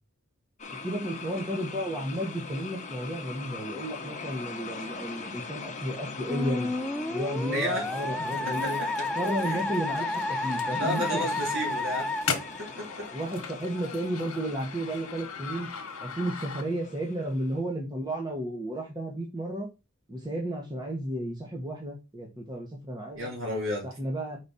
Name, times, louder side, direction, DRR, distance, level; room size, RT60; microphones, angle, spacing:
sound 1, 0.6-17.6, left 4 dB, 35° left, 1.1 m, -41 dB
voice 1, 0.7-6.7 7.1-8.8 9.1-11.3 13.1-15.7 16.0-19.7 20.1-23.3 23.8-24.4, right 1 dB, 20° right, 0 dB, 1.2 m, -33 dB
Musical instrument, 6.3-13.2, left 2 dB, 5° left, 0.3 m, -31 dB
voice 2, 7.5-7.8 8.6-9.1 9.4-9.6 10.7-12.1 12.6-13.1 23.1-23.9, equal, 60° right, -1 dB, 2.9 m, -32 dB
sound 2, 8.2-17.0, left 6 dB, 70° left, 1.3 m, -40 dB
5.2 x 4.9 x 4.2 m, 0.27 s
head